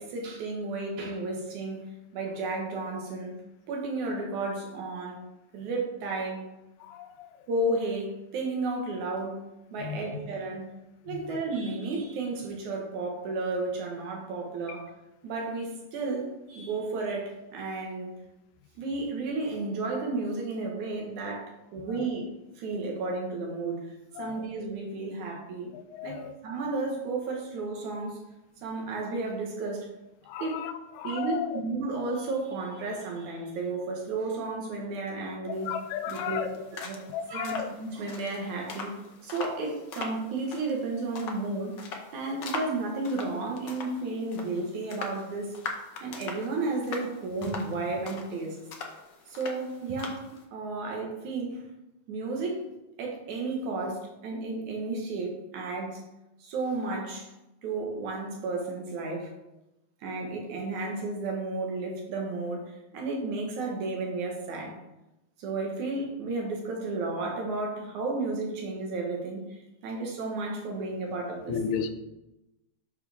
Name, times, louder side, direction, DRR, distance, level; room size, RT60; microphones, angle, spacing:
voice 1, 0.0-3.3 3.7-5.2 5.5-6.4 7.5-9.4 9.7-10.7 11.0-14.9 15.2-18.1 18.8-22.3 22.6-23.8 24.2-25.7 26.0-28.2 28.6-29.9 30.4-30.6 31.0-35.7 36.1-36.4 36.7-37.0 37.3-38.9 39.2-41.8 42.1-45.6 46.0-48.6 49.3-51.6 52.1-52.6 53.0-56.0 56.4-57.3 57.6-59.3 60.0-64.8 65.4-69.6 69.8-71.6, right 3 dB, 80° right, 0 dB, 2.9 m, -33 dB
voice 2, 6.8-7.3 9.8-10.0 11.1-11.2 24.2-24.4 25.7-26.3 30.3-31.6 35.6-36.6 37.1-37.7 71.5-71.9, left 7 dB, 90° left, 9 dB, 2.1 m, -34 dB
sound 1, 35.5-50.4, left 4 dB, 65° left, 1.1 m, -42 dB
8.6 x 6.2 x 3.5 m, 0.95 s
omnidirectional pair, 3.3 m